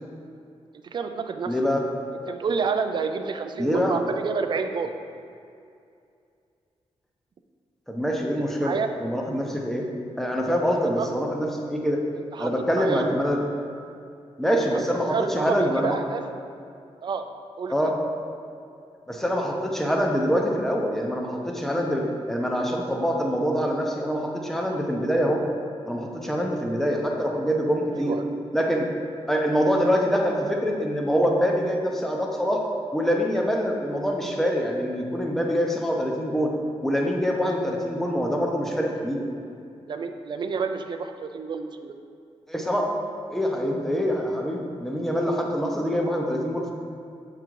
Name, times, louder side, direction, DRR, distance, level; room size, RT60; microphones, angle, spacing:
voice 1, 0.7-1.5 2.3-4.9 8.6-8.9 11.0-11.1 12.3-12.5 12.7-13.1 14.7-14.8 15.1-16.2 17.0-17.2 17.6-17.9 27.9-28.2 39.9-41.9, right 5 dB, 45° right, 7 dB, 0.4 m, -29 dB
voice 2, 1.5-1.8 3.6-4.0 7.9-9.8 10.2-12.0 12.4-13.4 14.4-16.0 17.7-17.9 19.1-25.4 25.8-28.2 28.5-28.9 29.3-32.6 32.9-36.5 36.8-39.3 42.5-42.9 43.3-46.8, equal, 5° left, 0 dB, 0.6 m, -25 dB
6.9 x 3.8 x 4.6 m, 2.5 s
wide cardioid pair, 150°, 11 cm